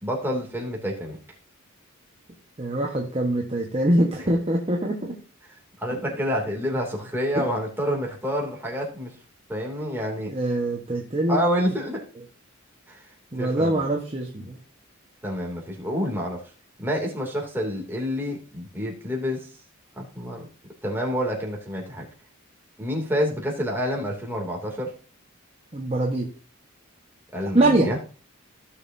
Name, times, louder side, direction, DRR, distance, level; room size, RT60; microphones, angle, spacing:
voice 1, 0.0-1.2 5.8-9.1 9.5-10.3 11.3-12.0 12.9-13.0 13.4-13.9 15.2-16.4 16.8-19.5 20.0-20.5 20.8-22.1 22.8-24.9 27.3-28.0, equal, 10° right, -1 dB, 2.8 m, -28 dB
voice 2, 2.6-5.2 7.3-7.4 10.3-11.4 13.3-14.6 25.7-26.3 27.5-27.9, right 1 dB, 30° right, -1 dB, 1.3 m, -23 dB
16.0 x 6.7 x 2.8 m, 0.37 s
head